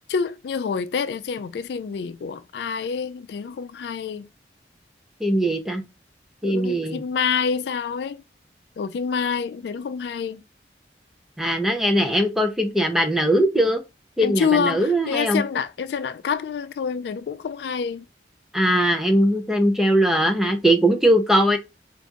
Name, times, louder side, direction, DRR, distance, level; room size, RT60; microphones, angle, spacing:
voice 1, 0.1-4.3 6.4-8.2 8.8-10.4 14.2-18.0, left 6 dB, 65° left, 0.3 m, -27 dB
voice 2, 5.2-5.8 6.4-7.0 11.4-13.8 14.2-15.4 18.5-21.6, right 1 dB, ahead, 0.5 m, -20 dB
3.6 x 2.5 x 3.9 m
head